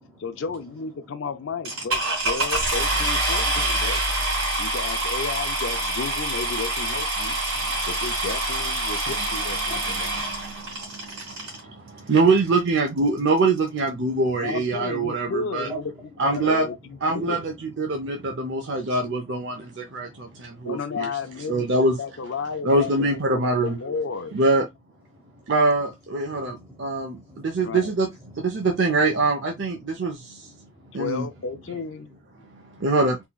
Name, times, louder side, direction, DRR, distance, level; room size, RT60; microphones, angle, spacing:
voice 1, 0.2-4.0 4.6-7.4 7.9-10.2 14.4-17.4 20.6-24.4 27.6-27.9 30.9-32.1, left 5 dB, 65° left, 0.4 m, -33 dB
sound 1, 1.6-11.6 12.4-12.5 13.0-13.1 13.3-13.6, right 1 dB, 70° right, 2.0 m, -26 dB
voice 2, 7.5-7.9 10.7-12.1 15.7-15.8 16.5-16.6 18.0-19.0 19.5-20.6 26.3-27.6 28.3-28.4 30.3-31.0 32.4-32.8, right 2 dB, 15° right, 0.7 m, -46 dB
voice 3, 9.7-15.7 16.2-16.6 17.0-21.1 21.5-22.0 22.6-23.8 24.3-24.6 25.5-28.1 28.4-30.5 30.9-31.3 32.8-33.2, right 3 dB, 55° right, 0.5 m, -24 dB
3.7 x 2.9 x 2.3 m
head